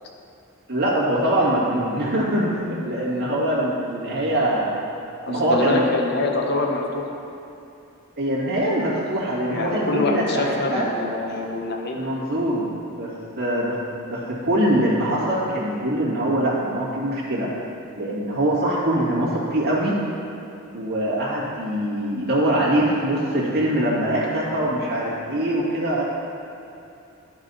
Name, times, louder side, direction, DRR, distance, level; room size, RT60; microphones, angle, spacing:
voice 1, 0.7-4.7 5.3-5.8 8.2-10.9 11.9-12.7 13.0-17.5 18.0-20.0 20.7-26.0, right 1 dB, 50° right, -7 dB, 2.2 m, -23 dB
voice 2, 5.3-7.2 9.5-12.1, left 2 dB, 50° left, 1 dB, 0.8 m, -25 dB
11.5 x 6.1 x 4.1 m, 2.8 s
head